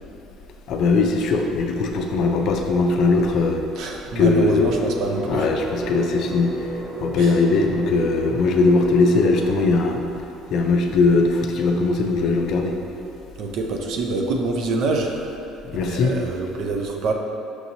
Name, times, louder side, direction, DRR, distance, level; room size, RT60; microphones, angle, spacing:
voice 1, 0.7-3.6 4.2-4.7 5.2-6.7 7.0-10.0 10.5-12.7 15.7-16.1, left 3 dB, 55° left, 3 dB, 0.4 m, -20 dB
voice 2, 3.8-5.5 7.2-7.3 13.4-15.4 15.8-17.1, right 3 dB, 60° right, 2 dB, 0.4 m, -25 dB
sound 1, 4.2-9.6, right 1 dB, 85° right, 1.3 m, -33 dB
5.9 x 2.9 x 2.7 m, 2.8 s
cardioid pair, 130°, 0 cm